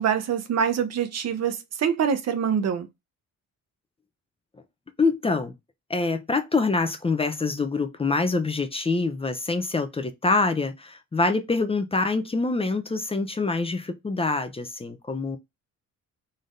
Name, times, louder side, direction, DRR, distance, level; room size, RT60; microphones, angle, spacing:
voice 1, 0.0-2.9, right 7 dB, 60° right, 0.9 m, -25 dB
voice 2, 5.0-5.5 5.9-15.4, left 3 dB, 20° left, 0.6 m, -25 dB
4.0 x 3.3 x 2.5 m
cardioid pair, 90°, 30 cm